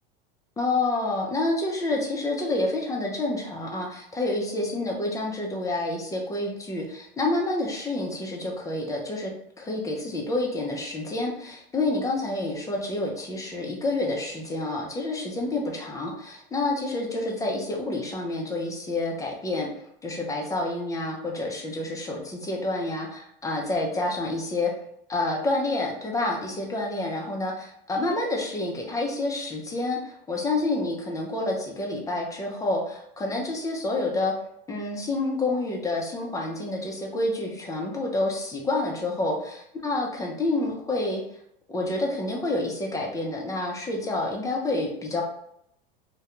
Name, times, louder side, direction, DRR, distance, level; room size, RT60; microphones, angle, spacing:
voice 1, 0.6-9.3 9.6-19.7 20.0-24.7 25.1-34.3 34.7-41.2 41.7-45.2, left 2 dB, 10° left, 0 dB, 0.5 m, -28 dB
2.2 x 2.2 x 2.9 m, 0.74 s
hypercardioid pair, 105°, 29 cm